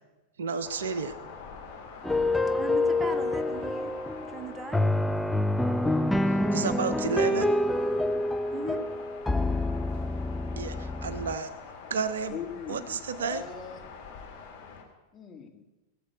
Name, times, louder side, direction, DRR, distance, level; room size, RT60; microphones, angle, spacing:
voice 1, 0.4-1.1 6.2-7.6 10.6-11.5 11.9-12.4 12.7-13.4, right 5 dB, 65° right, 13 dB, 0.7 m, -31 dB
sound 1, 0.6-14.8, left 5 dB, 50° left, 2.4 m, -45 dB
sound 2, 2.0-11.4, left 1 dB, 5° left, 0.5 m, -27 dB
voice 2, 2.5-3.9 4.3-4.8 8.5-8.8, right 2 dB, 15° right, 7 dB, 1.3 m, -37 dB
voice 3, 12.3-13.8 15.1-15.6, left 7 dB, 20° left, 3 dB, 1.9 m, -40 dB
17.0 x 7.7 x 8.2 m, 1.1 s
figure-of-eight pair, 90°, 0 cm